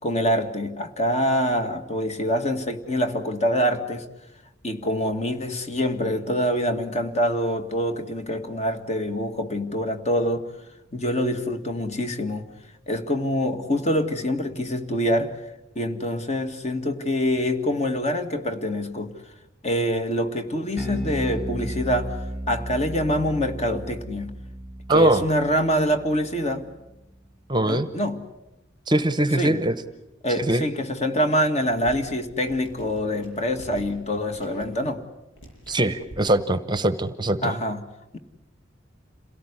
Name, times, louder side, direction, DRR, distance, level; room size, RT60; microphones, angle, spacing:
voice 1, 0.0-4.1 4.6-10.5 10.9-12.5 12.9-15.4 15.8-19.3 19.6-24.3 24.9-26.7 27.7-28.2 29.4-29.6 30.2-35.0 37.4-37.8, equal, 35° left, 2.0 m, -25 dB
Bass guitar, 20.8-27.2, right 1 dB, ahead, 1.9 m, -35 dB
voice 2, 24.9-25.2 27.5-27.9 28.9-29.7 30.4-30.6 35.7-37.5, right 1 dB, 20° right, 0.9 m, -22 dB
sound 1, 31.7-36.3, equal, 70° left, 7.9 m, -46 dB
27.5 x 17.5 x 9.8 m
head